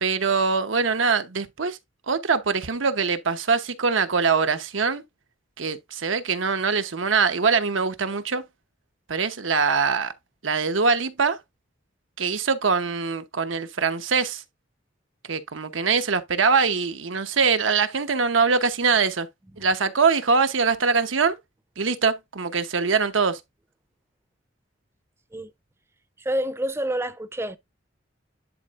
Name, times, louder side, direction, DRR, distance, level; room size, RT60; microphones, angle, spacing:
voice 1, 0.0-1.8 2.1-5.0 5.6-8.4 9.1-10.1 10.4-11.4 12.2-14.4 15.3-19.3 19.6-21.4 21.8-23.4, right 5 dB, 85° right, 1.0 m, -23 dB
voice 2, 26.2-27.6, right 1 dB, 15° right, 0.5 m, -28 dB
10.5 x 4.2 x 2.5 m
head